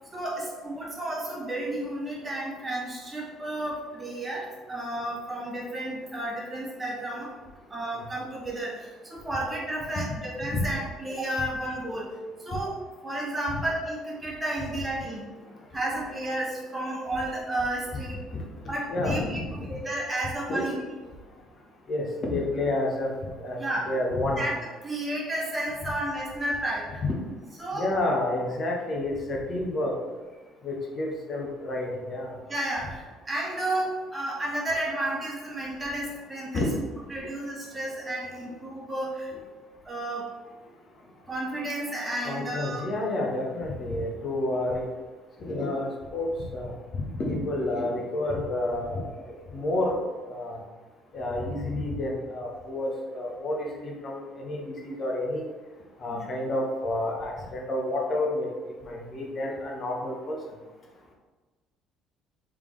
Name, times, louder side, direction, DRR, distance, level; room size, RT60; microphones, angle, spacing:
voice 1, 0.1-7.3 7.7-12.1 12.4-15.2 15.7-18.3 18.7-20.8 23.6-23.9 24.4-24.5 24.8-27.0 27.6-27.9 32.5-36.6 37.1-39.3 39.8-40.3 41.3-42.8 56.1-56.3, right 1 dB, 25° right, -4 dB, 1.2 m, -32 dB
voice 2, 18.9-19.7 20.5-20.8 21.9-23.1 23.4-24.4 27.7-30.0 30.6-32.3 36.5-36.8 42.2-44.8 45.4-46.8 47.2-50.0 50.3-50.6 51.1-55.4 56.0-58.5 58.8-60.3, left 1 dB, 45° left, -1 dB, 0.9 m, -29 dB
3.4 x 3.4 x 3.2 m, 1.3 s
hypercardioid pair, 55°, 0 cm